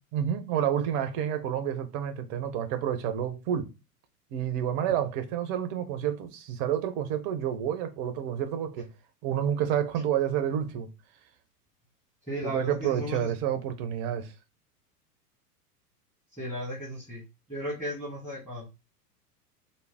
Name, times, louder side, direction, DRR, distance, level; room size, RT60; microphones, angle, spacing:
voice 1, 0.1-3.7 4.3-8.9 9.2-10.9 12.4-14.3, right 9 dB, 30° right, 0.5 m, -29 dB
voice 2, 12.3-13.3 16.4-17.2 17.5-18.7, equal, 5° left, 1.2 m, -35 dB
3.2 x 2.1 x 3.3 m
figure-of-eight pair, 90°, 47 cm